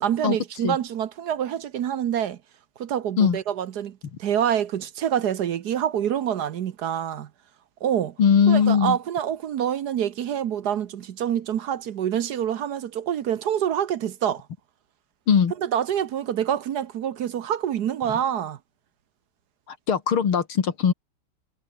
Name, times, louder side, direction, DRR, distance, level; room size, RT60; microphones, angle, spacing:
voice 1, 0.0-2.4 2.8-7.3 7.8-8.1 8.5-14.5 15.6-18.6, right 9 dB, 60° right, 1.2 m, -26 dB
voice 2, 8.2-9.0 15.3-15.5 19.7-20.9, left 7 dB, 70° left, 2.9 m, -20 dB
omnidirectional pair, 2.4 m